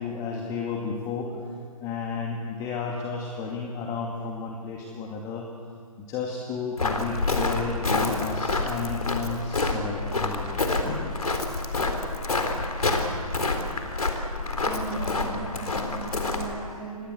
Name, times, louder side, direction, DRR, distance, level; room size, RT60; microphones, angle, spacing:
voice 1, 0.0-1.4 1.8-5.5 6.0-11.1, left 5 dB, 20° left, 0 dB, 2.2 m, -32 dB
Walk footsteps, 6.8-16.5, left 2 dB, 75° left, 3.7 m, -27 dB
voice 2, 14.6-17.1, right 3 dB, ahead, -6 dB, 7.7 m, -37 dB
27.0 x 21.5 x 8.3 m, 2.1 s
figure-of-eight pair, 135°, 19 cm